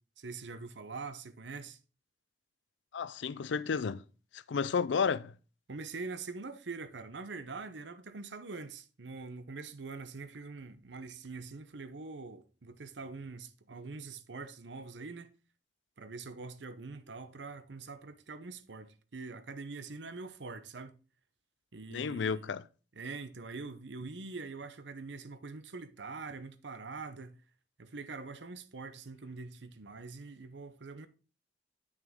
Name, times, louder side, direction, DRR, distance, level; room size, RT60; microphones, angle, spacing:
voice 1, 0.2-1.8 5.7-15.3 16.0-20.9 21.7-22.6 22.9-27.4 27.8-31.1, right 4 dB, 85° right, 0.8 m, -44 dB
voice 2, 2.9-4.0 4.3-5.3 21.9-22.6, left 6 dB, 90° left, 0.4 m, -32 dB
8.5 x 6.2 x 3.6 m
head